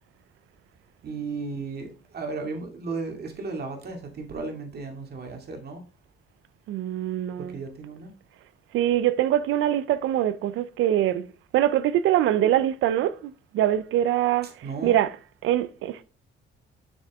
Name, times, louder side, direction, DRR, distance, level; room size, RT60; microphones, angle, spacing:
voice 1, 1.0-5.8 7.4-8.1 14.4-15.0, right 4 dB, 55° right, 2.2 m, -35 dB
voice 2, 6.7-7.6 8.7-11.2 11.5-14.5 14.8-15.1 15.4-16.0, right 12 dB, 85° right, 0.6 m, -23 dB
6.6 x 6.4 x 3.5 m
cardioid pair, 90°, 20 cm